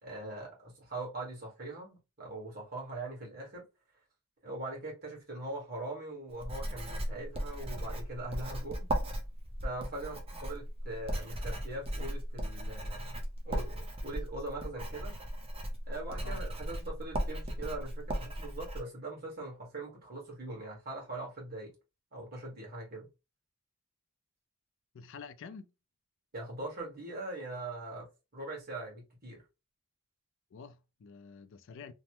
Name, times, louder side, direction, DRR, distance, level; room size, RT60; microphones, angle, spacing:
voice 1, 0.0-3.6 4.4-8.9 9.6-15.1 15.9-21.7 22.1-23.1 26.3-28.1 28.3-29.4, right 2 dB, 45° right, 1.4 m, -41 dB
Writing, 6.4-18.8, equal, 25° right, 0.6 m, -37 dB
voice 2, 24.9-25.7 30.5-31.9, left 5 dB, 60° left, 0.4 m, -48 dB
3.1 x 2.0 x 2.9 m
head